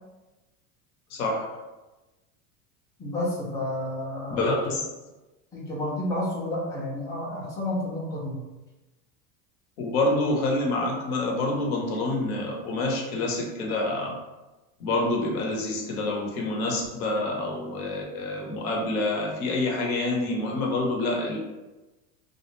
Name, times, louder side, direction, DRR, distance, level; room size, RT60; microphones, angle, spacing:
voice 1, 1.1-1.6 4.3-4.8 9.8-14.1 14.8-21.4, left 2 dB, 75° left, 0 dB, 0.8 m, -27 dB
voice 2, 3.0-4.6 5.5-8.4, left 1 dB, 10° left, -5 dB, 0.4 m, -30 dB
2.4 x 2.0 x 2.9 m, 1.1 s
supercardioid pair, 120°, 43 cm